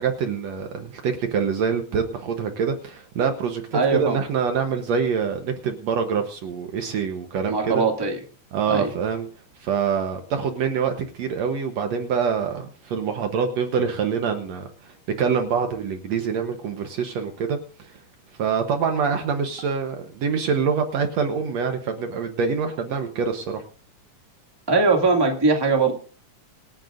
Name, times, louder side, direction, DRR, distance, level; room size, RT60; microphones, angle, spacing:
voice 1, 0.0-7.8 8.5-9.3 9.6-17.6 17.8-17.9 18.4-23.6, right 6 dB, 65° right, 5 dB, 2.1 m, -25 dB
voice 2, 3.7-4.2 7.5-8.2 8.7-8.9 24.7-25.9, right 4 dB, 10° right, 1 dB, 1.8 m, -20 dB
26.5 x 9.0 x 2.6 m, 0.39 s
omnidirectional pair, 3.6 m